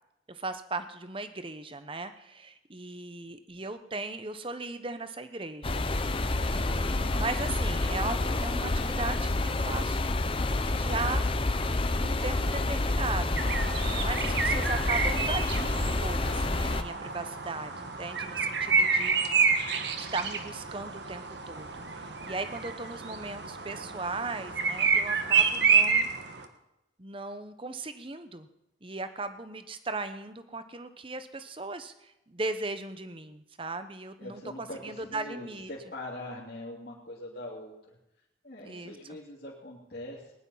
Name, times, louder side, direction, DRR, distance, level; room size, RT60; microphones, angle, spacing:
voice 1, 0.3-6.3 6.5-10.1 10.7-11.2 12.0-13.4 14.0-19.3 19.5-26.1 27.0-28.5 28.8-35.7 38.6-39.2, right 3 dB, 30° right, 10 dB, 0.9 m, -38 dB
sound 1, 5.6-16.8, left 2 dB, 30° left, 0.7 m, -28 dB
voice 2, 7.0-7.3 14.2-14.6 34.2-38.0 38.4-40.3, left 1 dB, 50° left, -6 dB, 3.0 m, -43 dB
sound 2, 13.4-26.4, right 5 dB, 65° right, 1.4 m, -29 dB
20.0 x 11.0 x 5.6 m, 0.90 s
head